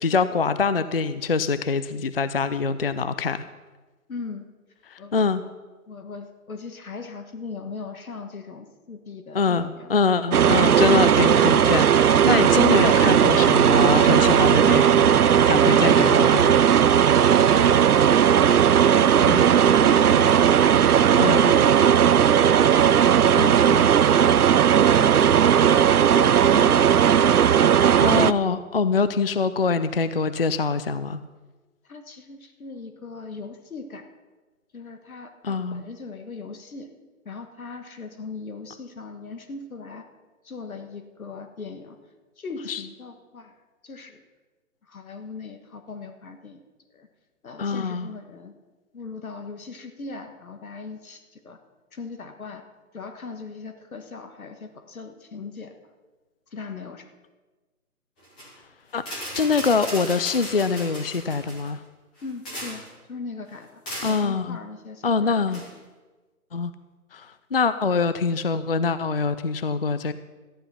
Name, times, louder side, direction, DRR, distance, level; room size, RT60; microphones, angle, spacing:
voice 1, 0.0-3.4 4.9-5.4 9.3-16.5 19.3-19.5 21.2-21.5 23.4-23.9 28.0-31.2 35.4-35.8 42.7-42.8 47.6-48.1 58.9-59.0 59.4-61.8 64.0-64.6 65.0-65.6 66.5-66.7 67.1-70.1, left 4 dB, 45° left, 13 dB, 0.4 m, -24 dB
voice 2, 4.1-4.4 5.0-5.5 5.9-9.9 17.3-20.5 20.8-22.5 24.8-26.8 31.8-34.0 34.7-36.9 37.2-40.1 40.4-42.0 42.4-43.5 43.8-44.2 44.8-46.6 46.9-47.1 47.4-48.5 48.9-51.6 51.9-52.6 52.9-55.7 56.5-57.1 62.2-62.8 63.1-65.8, left 4 dB, 70° left, 7 dB, 1.7 m, -39 dB
sound 1, 10.3-28.3, right 9 dB, 85° right, 0.6 m, -17 dB
sound 2, 58.2-58.5 59.0-61.7 62.2-62.9 63.9-64.2 65.5-65.7, equal, 5° left, 0.7 m, -36 dB
14.0 x 10.0 x 5.7 m, 1.3 s
hypercardioid pair, 155°, 44 cm